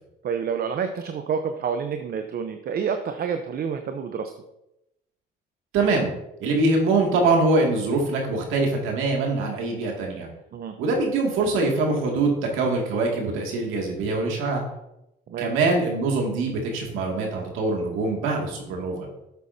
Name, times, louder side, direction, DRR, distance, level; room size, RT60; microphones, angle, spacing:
voice 1, 0.2-4.3 10.5-10.7 15.3-15.5, right 6 dB, 50° right, 7 dB, 0.7 m, -28 dB
voice 2, 5.7-6.1 6.4-10.3 10.8-14.6 15.4-19.1, right 3 dB, 80° right, 1 dB, 2.3 m, -23 dB
11.5 x 8.1 x 2.8 m, 0.87 s
cardioid pair, 90°, 20 cm